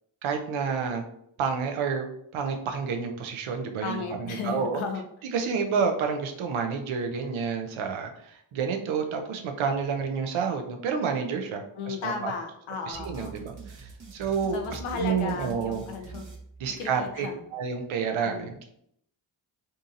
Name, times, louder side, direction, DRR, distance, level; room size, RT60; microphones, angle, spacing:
voice 1, 0.2-1.0 1.4-4.8 5.2-12.3 12.9-15.8 16.6-18.7, right 6 dB, 75° right, 5 dB, 0.6 m, -29 dB
voice 2, 3.8-5.0 11.8-13.4 14.5-16.2 16.8-17.4 18.2-18.5, left 5 dB, 80° left, 5 dB, 0.6 m, -34 dB
sound 1, 12.9-17.2, right 4 dB, 40° right, 0.8 m, -44 dB
2.7 x 2.6 x 2.5 m, 0.73 s
supercardioid pair, 45°, 49 cm